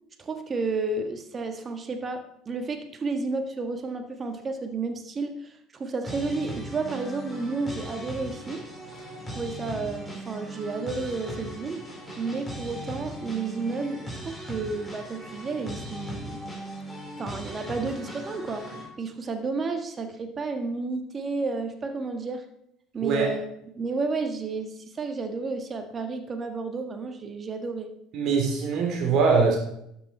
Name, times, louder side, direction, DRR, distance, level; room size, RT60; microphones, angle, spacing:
voice 1, 0.2-8.7 9.3-11.9 12.2-16.4 17.2-22.5 22.9-23.4 23.7-27.9, right 3 dB, 35° right, 7 dB, 1.5 m, -31 dB
sound 1, 6.0-18.9, equal, 5° left, 3.9 m, -38 dB
voice 2, 28.1-29.6, right 5 dB, 55° right, 1 dB, 3.3 m, -22 dB
12.0 x 7.0 x 4.4 m, 0.75 s
hypercardioid pair, 60°, 0 cm